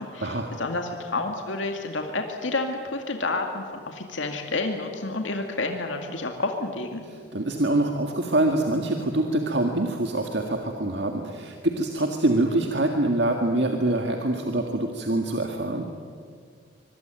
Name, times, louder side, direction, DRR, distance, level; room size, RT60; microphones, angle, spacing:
voice 1, 0.0-7.0, left 2 dB, 90° left, 3 dB, 2.2 m, -30 dB
voice 2, 7.3-15.8, right 1 dB, 65° right, 3 dB, 1.9 m, -25 dB
25.0 x 22.5 x 9.2 m, 2.2 s
head